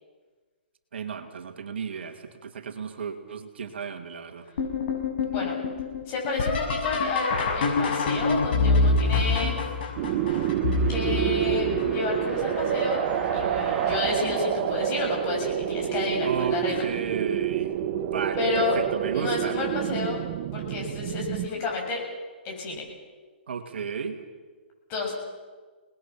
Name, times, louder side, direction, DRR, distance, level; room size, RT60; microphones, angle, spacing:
voice 1, 0.9-4.5 16.2-17.7 18.0-19.6 23.5-24.2, right 6 dB, 70° right, 5 dB, 2.6 m, -33 dB
sound 1, 4.6-12.3 12.9-13.4 13.9-14.5 15.8-15.9 16.6-17.0 19.1-19.2 21.5-21.6, left 3 dB, 60° left, 6.5 m, -26 dB
voice 2, 5.2-5.6 6.1-9.6 10.9-13.1 13.3-16.8 18.4-18.7 19.1-20.2 20.5-22.0 22.4-22.8 24.9-25.1, left 4 dB, 30° left, -1 dB, 7.6 m, -31 dB
sound 2, 9.5-14.0, right 2 dB, 10° right, 7.9 m, -41 dB
sound 3, 10.0-21.5, right 10 dB, 35° right, 1.2 m, -28 dB
29.0 x 20.0 x 6.0 m, 1.4 s
hypercardioid pair, 150°, 6 cm